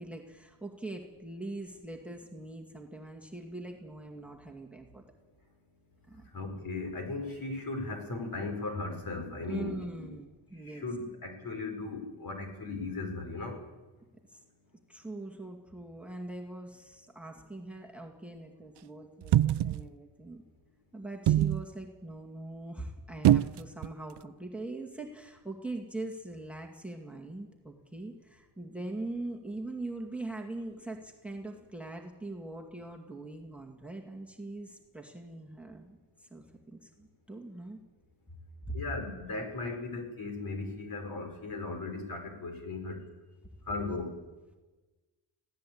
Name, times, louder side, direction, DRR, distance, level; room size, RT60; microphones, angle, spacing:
voice 1, 0.0-5.0 6.1-6.3 9.5-10.9 14.3-14.4 14.9-20.4 20.9-37.8 38.3-38.4 38.7-38.8, right 2 dB, 5° right, 3 dB, 2.3 m, -42 dB
voice 2, 6.2-10.1 10.5-13.6 38.7-43.1 43.6-44.2, left 3 dB, 50° left, 5 dB, 4.9 m, -37 dB
sound 1, 19.2-19.9 21.3-21.6 23.2-23.9 24.2-24.3, right 12 dB, 70° right, 0.6 m, -23 dB
20.0 x 16.0 x 8.7 m, 1.2 s
cardioid pair, 95°, 43 cm